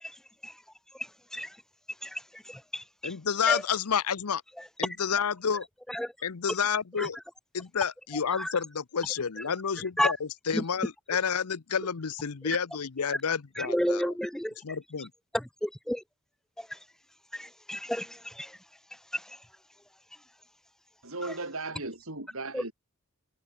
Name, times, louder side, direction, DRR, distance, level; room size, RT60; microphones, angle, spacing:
voice 1, 2.5-3.1 3.5-3.6 5.9-6.1 7.0-7.1 8.4-8.5 10.0-10.1 10.5-10.6 13.6-14.5 15.3-16.0 17.3-18.5 19.1-19.2 22.5-22.6, equal, ahead, 0.4 m, -31 dB
voice 2, 3.0-4.4 4.8-5.7 6.2-7.2 7.5-14.1 14.6-15.1, left 6 dB, 90° left, 0.8 m, -30 dB
voice 3, 21.0-22.7, right 2 dB, 65° right, 4.9 m, -36 dB
open air
head